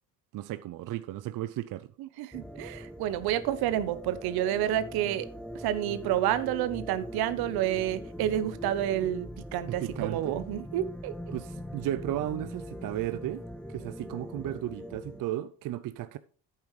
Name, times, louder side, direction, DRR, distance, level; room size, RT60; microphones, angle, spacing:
voice 1, 0.3-1.9 9.7-10.3 11.3-13.4 13.7-16.2, right 13 dB, 60° right, 0.6 m, -34 dB
voice 2, 2.0-5.3 5.5-11.1, right 12 dB, 75° right, 0.9 m, -29 dB
sound 1, 2.3-15.2, equal, 5° left, 0.9 m, -42 dB
10.5 x 8.8 x 3.2 m
supercardioid pair, 75°, 38 cm